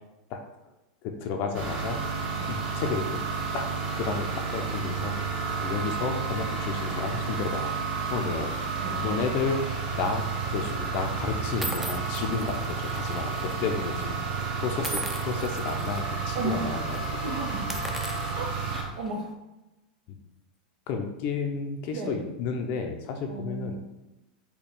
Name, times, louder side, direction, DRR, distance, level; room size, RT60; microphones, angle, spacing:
voice 1, 1.0-2.0 2.5-3.2 3.5-3.7 3.9-4.3 4.5-5.1 5.6-7.7 8.0-9.6 9.9-17.3 17.7-17.8 20.1-20.2 20.9-23.8, left 5 dB, 50° left, 4 dB, 0.5 m, -32 dB
sound 1, 1.5-18.8, right 5 dB, 45° right, 1.2 m, -31 dB
sound 2, 11.6-13.6 13.8-14.0 14.8-16.0 16.4-16.6 16.9-17.1 17.6-19.1, right 1 dB, 5° right, 0.5 m, -38 dB
voice 2, 16.3-16.7 17.1-17.8 18.3-19.3 21.9-22.2 23.3-23.8, right 3 dB, 65° right, 1 dB, 1.0 m, -35 dB
4.2 x 2.3 x 3.5 m, 0.98 s
hypercardioid pair, 115°, 5 cm